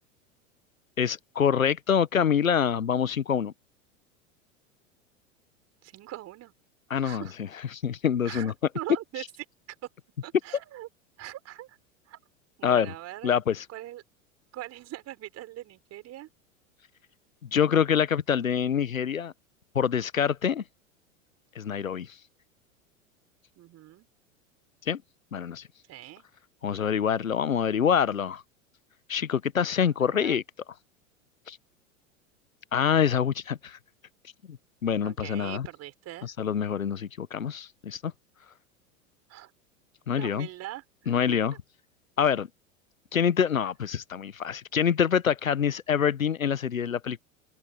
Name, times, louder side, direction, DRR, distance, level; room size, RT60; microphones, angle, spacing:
voice 1, 1.0-3.5 6.9-7.3 7.7-8.5 12.6-12.9 13.2-13.6 17.4-19.3 19.7-20.6 21.5-22.1 24.9-25.0 25.3-25.6 26.6-28.4 29.1-30.4 31.5-31.6 32.7-33.8 34.5-34.6 34.8-35.7 36.2-38.1 40.1-40.5 41.1-41.5 42.2-42.5 43.1-47.2, left 8 dB, 85° left, 1.2 m, -26 dB
voice 2, 5.8-6.5 7.0-7.3 8.2-9.2 9.7-9.8 10.2-10.9 11.2-11.8 12.1-12.2 12.6-13.4 13.7-14.0 14.5-16.3 23.6-24.1 25.9-26.2 29.8-30.4 35.0-36.3 39.3-39.5 40.1-41.1, right 14 dB, 40° right, 5.0 m, -42 dB
open air
hypercardioid pair, 90°, 40 cm